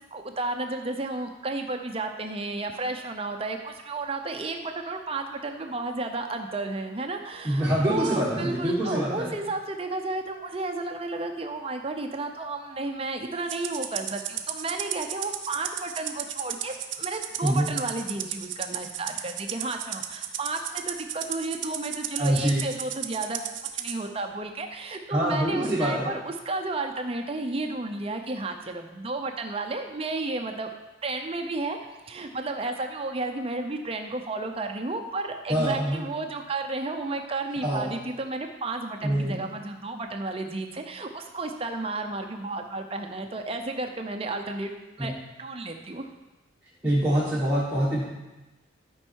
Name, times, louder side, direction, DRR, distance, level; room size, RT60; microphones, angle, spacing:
voice 1, 0.1-23.4 23.7-30.7 31.0-31.8 32.0-45.1 45.4-46.1, right 2 dB, 30° right, 4 dB, 0.6 m, -32 dB
voice 2, 7.4-9.3 17.4-17.7 22.2-22.6 25.1-26.1 35.5-36.0 37.6-37.9 39.0-39.4 45.0-45.1 46.8-48.0, right 1 dB, 10° right, -9 dB, 1.4 m, -25 dB
Rattle (instrument), 13.5-24.0, right 10 dB, 75° right, 0.7 m, -34 dB
12.0 x 5.4 x 4.6 m, 1.1 s
head